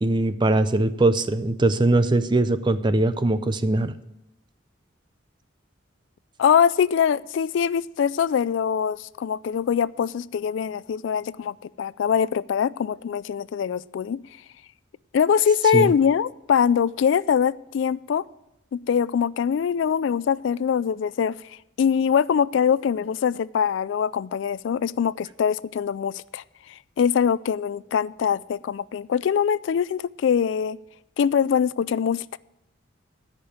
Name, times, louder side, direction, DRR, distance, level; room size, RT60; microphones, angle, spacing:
voice 1, 0.0-3.9 15.7-15.9, right 2 dB, 25° right, 13 dB, 0.5 m, -21 dB
voice 2, 6.4-14.2 15.1-18.2 18.7-21.4 21.8-26.4 27.0-30.8 31.2-32.4, left 7 dB, 65° left, 19 dB, 0.3 m, -23 dB
13.0 x 5.2 x 8.6 m, 0.89 s
head